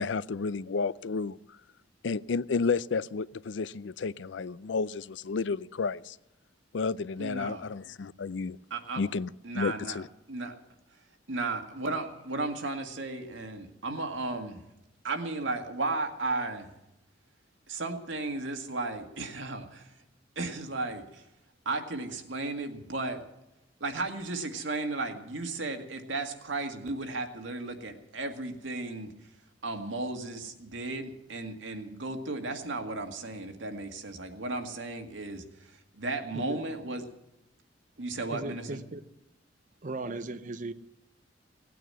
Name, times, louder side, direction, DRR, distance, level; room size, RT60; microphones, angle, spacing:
voice 1, 0.0-1.4 2.0-6.2 6.7-8.6 9.0-10.1, left 4 dB, 70° left, 19 dB, 0.5 m, -31 dB
voice 2, 7.2-7.6 8.7-9.0 9.4-10.0 10.3-10.5 11.3-14.6 15.0-16.7 17.7-19.9 20.4-21.2 21.7-23.2 23.8-29.1 29.6-37.0 38.0-38.8, right 2 dB, 90° right, 5 dB, 1.9 m, -34 dB
voice 3, 38.3-39.0 39.8-40.7, right 2 dB, 45° right, 10 dB, 0.7 m, -37 dB
17.5 x 9.2 x 7.7 m, 0.91 s
head